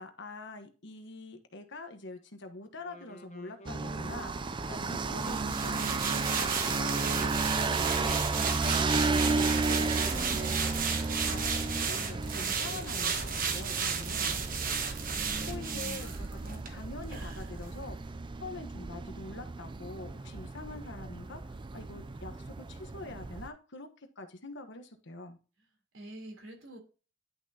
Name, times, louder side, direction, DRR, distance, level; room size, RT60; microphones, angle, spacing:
voice 1, 0.0-8.3 8.6-10.6 11.1-14.4 15.5-18.1 18.4-25.4, left 2 dB, 60° left, 7 dB, 1.2 m, -45 dB
sound 1, 2.8-14.6, equal, 35° left, 1.1 m, -51 dB
sound 2, 3.6-23.5, right 3 dB, 25° right, 0.4 m, -33 dB
sound 3, 5.2-16.7 17.1-17.2, right 6 dB, 45° right, 1.2 m, -34 dB
voice 2, 15.1-16.3 17.1-17.5 25.9-26.8, right 1 dB, 75° right, 2 dB, 3.4 m, -45 dB
11.0 x 6.0 x 2.8 m, 0.35 s
head